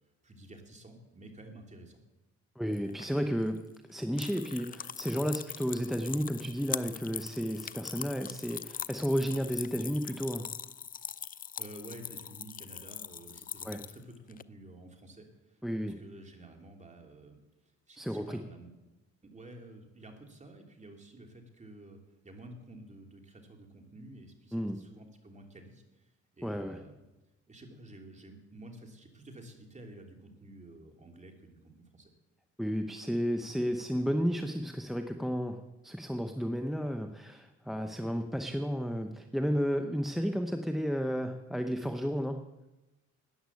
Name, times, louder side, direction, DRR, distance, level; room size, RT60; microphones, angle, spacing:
voice 1, 0.2-2.0 11.3-17.4 17.9-18.7 19.2-22.0 22.2-27.0 27.5-32.1, right 1 dB, 25° right, 3 dB, 2.9 m, -51 dB
voice 2, 2.6-3.6 3.9-10.5 13.6-13.8 15.6-16.0 18.0-18.4 24.5-24.8 26.4-26.8 32.6-42.4, equal, ahead, 6 dB, 0.9 m, -32 dB
sound 1, 2.7-14.4, left 8 dB, 30° left, 0.4 m, -42 dB
13.0 x 9.6 x 8.4 m, 1.0 s
cardioid pair, 90°, 30 cm